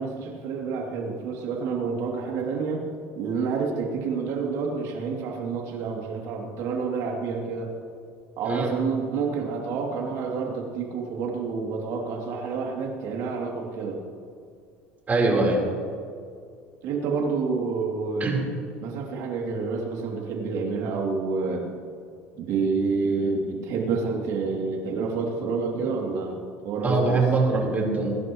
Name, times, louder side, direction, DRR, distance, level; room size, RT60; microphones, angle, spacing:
voice 1, 0.0-2.8 3.1-7.7 8.4-14.0 16.8-18.5 18.8-21.7 22.3-26.4 26.6-27.2, right 4 dB, 65° right, 0 dB, 2.9 m, -28 dB
voice 2, 15.1-15.6 18.2-18.4 26.8-28.1, right 3 dB, 30° right, -1 dB, 4.2 m, -22 dB
21.5 x 11.5 x 3.2 m, 2.2 s
hypercardioid pair, 80°, 6 cm